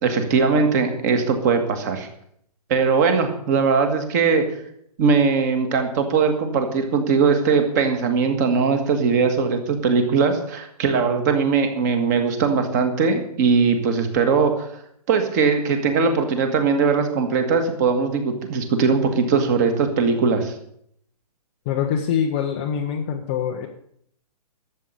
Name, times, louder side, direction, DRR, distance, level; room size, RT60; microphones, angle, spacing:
voice 1, 0.0-2.1 2.7-4.4 5.0-14.7 15.1-20.5, right 5 dB, 25° right, 6 dB, 1.7 m, -20 dB
voice 2, 21.7-23.7, left 8 dB, 15° left, 3 dB, 0.5 m, -24 dB
12.5 x 7.5 x 8.0 m, 0.69 s
hypercardioid pair, 165°, 21 cm